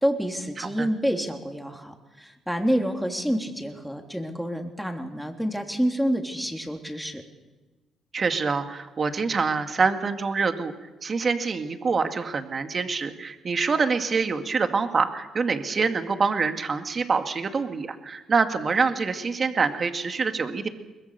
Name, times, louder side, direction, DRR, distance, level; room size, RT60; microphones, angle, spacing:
voice 1, 0.0-7.2, equal, ahead, 3 dB, 3.2 m, -28 dB
voice 2, 0.6-0.9 8.1-10.7 11.0-20.7, right 5 dB, 40° right, 7 dB, 2.0 m, -25 dB
22.5 x 21.0 x 6.8 m, 1.2 s
cardioid pair, 90°, 0 cm